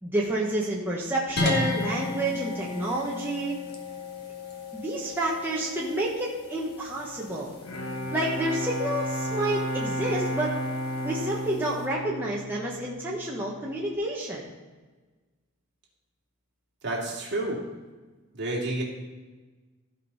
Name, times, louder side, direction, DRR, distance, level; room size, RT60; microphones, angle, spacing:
voice 1, 0.0-3.6 4.7-7.5 8.1-10.5 11.0-14.5, right 1 dB, 10° right, -5 dB, 1.3 m, -29 dB
sound 1, 1.4-11.9, left 2 dB, 50° left, 1.5 m, -36 dB
Bowed string instrument, 7.4-13.2, equal, 75° left, 1.0 m, -32 dB
voice 2, 16.8-17.6 18.3-18.8, right 2 dB, 50° right, -3 dB, 2.6 m, -29 dB
15.5 x 5.4 x 4.1 m, 1.3 s
head